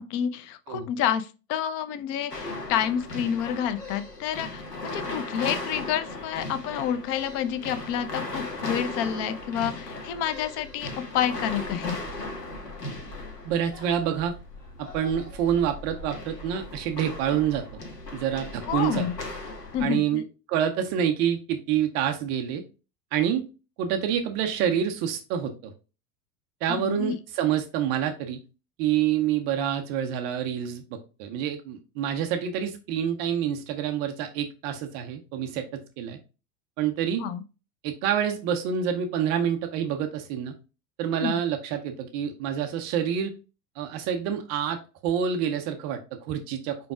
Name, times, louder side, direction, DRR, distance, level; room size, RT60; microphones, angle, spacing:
voice 1, 0.0-12.0 18.7-19.1 19.7-20.2 26.7-27.1 37.2-37.4 41.1-41.4, left 9 dB, 35° left, 12 dB, 0.6 m, -29 dB
sound 1, 2.3-19.9, left 2 dB, 85° left, 1.4 m, -37 dB
voice 2, 13.4-14.3 14.8-17.6 18.1-19.0 19.8-20.2 20.5-22.6 23.1-23.4 23.8-25.7 26.6-28.4 28.8-36.2 36.8-37.2 37.8-40.5 41.0-43.3 43.8-46.9, right 9 dB, 25° right, 6 dB, 0.3 m, -27 dB
5.1 x 4.6 x 2.3 m, 0.31 s
hypercardioid pair, 90°, 47 cm